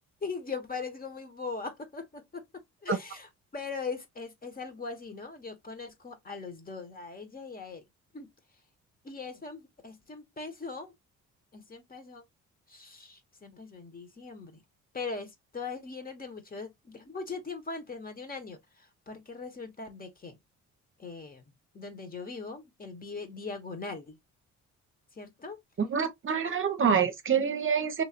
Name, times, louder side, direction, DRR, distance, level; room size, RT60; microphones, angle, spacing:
voice 1, 0.2-7.9 8.1-8.3 9.0-10.9 11.5-12.2 12.7-14.6 14.9-20.4 21.0-21.4 21.7-24.2 25.1-25.6, left 4 dB, 30° left, 1.2 m, -40 dB
voice 2, 25.8-28.0, right 7 dB, 40° right, 0.8 m, -26 dB
3.2 x 3.1 x 2.9 m
cardioid pair, 90°, 30 cm